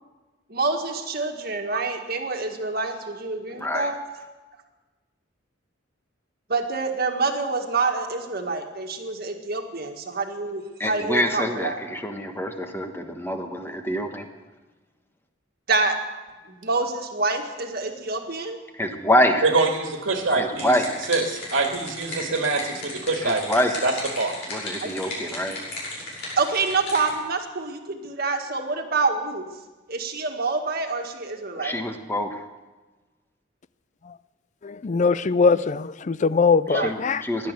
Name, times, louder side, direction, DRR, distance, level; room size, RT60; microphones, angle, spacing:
voice 1, 0.5-4.0 6.5-11.8 15.7-16.0 16.5-18.6 24.8-25.6 26.4-29.5 29.9-31.8 36.7-37.2, right 3 dB, 50° right, 1.7 m, -27 dB
voice 2, 3.5-3.9 10.8-14.2 18.7-19.4 20.3-21.0 23.2-23.9 24.5-25.6 31.6-32.4 36.7-37.5, equal, 10° left, 1.3 m, -25 dB
voice 3, 19.4-20.7 21.1-23.4 23.8-24.4, right 3 dB, 80° right, 1.8 m, -24 dB
sound 1, 20.3-27.1, left 2 dB, 60° left, 6.2 m, -35 dB
voice 4, 34.6-37.2, left 4 dB, 40° left, 0.4 m, -21 dB
16.5 x 11.5 x 6.7 m
head